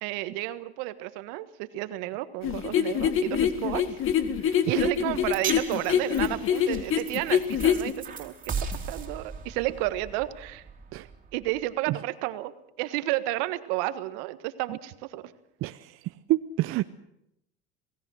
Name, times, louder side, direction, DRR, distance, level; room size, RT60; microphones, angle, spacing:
voice 1, 0.0-4.0 4.4-8.5 8.9-10.6 11.3-12.5 12.8-15.3, right 17 dB, 65° right, 12 dB, 1.6 m, -32 dB
sound 1, 2.4-7.9, left 9 dB, 45° left, 2.1 m, -25 dB
sound 2, 5.3-11.7, right 5 dB, 25° right, 3.6 m, -38 dB
voice 2, 16.3-16.8, right 16 dB, 45° right, 11 dB, 0.7 m, -27 dB
28.0 x 18.0 x 6.4 m, 0.81 s
hypercardioid pair, 95°, 31 cm